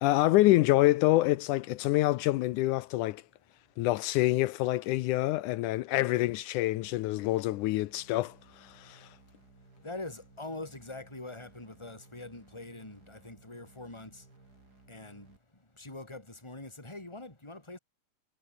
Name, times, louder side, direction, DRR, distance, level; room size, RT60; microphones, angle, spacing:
voice 1, 0.0-3.2 3.8-9.1, left 17 dB, 80° left, 2.1 m, -26 dB
sound 1, 6.8-15.4, right 3 dB, 30° right, 5.3 m, -59 dB
voice 2, 9.8-17.8, left 2 dB, 10° left, 4.8 m, -44 dB
omnidirectional pair, 3.7 m